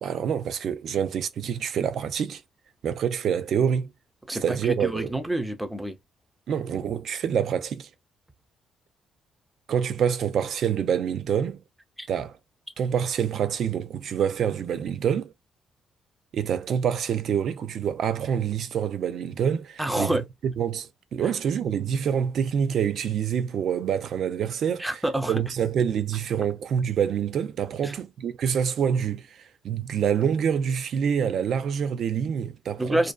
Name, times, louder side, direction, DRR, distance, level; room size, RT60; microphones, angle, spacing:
voice 1, 0.0-2.4 2.8-3.9 4.3-5.1 6.5-7.9 9.7-11.6 12.1-12.4 12.8-15.3 16.3-25.0 25.3-33.0, right 8 dB, 65° right, 0.4 m, -26 dB
voice 2, 4.3-6.0 12.0-12.1 19.8-20.2 24.8-25.4 27.8-27.9 32.8-33.1, right 1 dB, 10° right, 0.6 m, -27 dB
2.6 x 2.2 x 2.2 m
cardioid pair, 90°, 0 cm